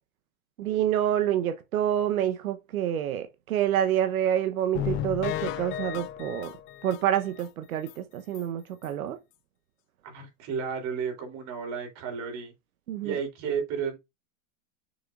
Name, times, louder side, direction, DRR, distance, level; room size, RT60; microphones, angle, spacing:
voice 1, 0.6-6.5 6.8-9.2 12.9-13.1, right 10 dB, 90° right, 1.0 m, -27 dB
sound 1, 4.7-7.5 7.9-8.0 8.3-8.4 8.8-8.9, left 10 dB, 30° left, 0.6 m, -34 dB
voice 2, 10.0-12.5 13.0-14.0, right 6 dB, 40° right, 3.3 m, -32 dB
6.4 x 6.2 x 2.4 m
supercardioid pair, 135°, 41 cm